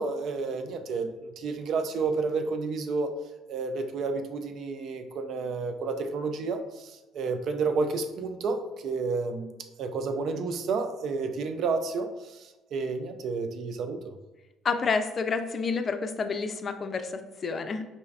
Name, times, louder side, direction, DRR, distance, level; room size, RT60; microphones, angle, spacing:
voice 1, 0.0-3.2 3.5-9.5 9.8-14.1, right 4 dB, 60° right, 6 dB, 0.4 m, -31 dB
voice 2, 14.6-17.8, left 4 dB, 40° left, 8 dB, 0.4 m, -29 dB
4.1 x 2.3 x 3.2 m, 1.1 s
hypercardioid pair, 55°, 0 cm